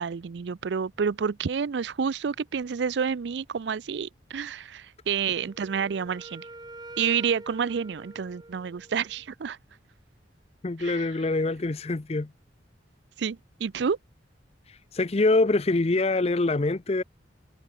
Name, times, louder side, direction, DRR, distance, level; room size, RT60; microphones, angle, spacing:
voice 1, 0.0-6.5 7.0-9.6 10.8-11.1 13.2-14.0, right 6 dB, 65° right, 0.4 m, -29 dB
Wind instrument woodwind instrument, 5.3-9.2, right 2 dB, 20° right, 2.9 m, -46 dB
voice 2, 10.6-12.3 14.7-17.0, left 2 dB, 35° left, 0.6 m, -25 dB
head